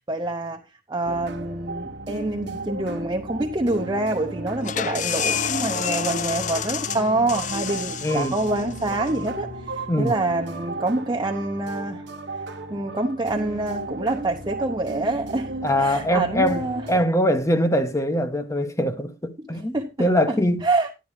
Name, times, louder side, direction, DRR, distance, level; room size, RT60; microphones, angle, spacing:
voice 1, 0.1-0.6 0.9-12.0 12.7-15.5 15.8-16.8 19.7-20.4 20.6-20.9, right 2 dB, 25° right, 0.8 m, -26 dB
sound 1, 1.0-17.1, right 2 dB, 70° right, 1.2 m, -35 dB
sound 2, 4.6-10.1, left 8 dB, 45° left, 0.5 m, -30 dB
voice 2, 8.0-8.4 9.9-10.1 15.6-20.7, equal, 15° left, 1.0 m, -23 dB
11.0 x 10.5 x 3.2 m
head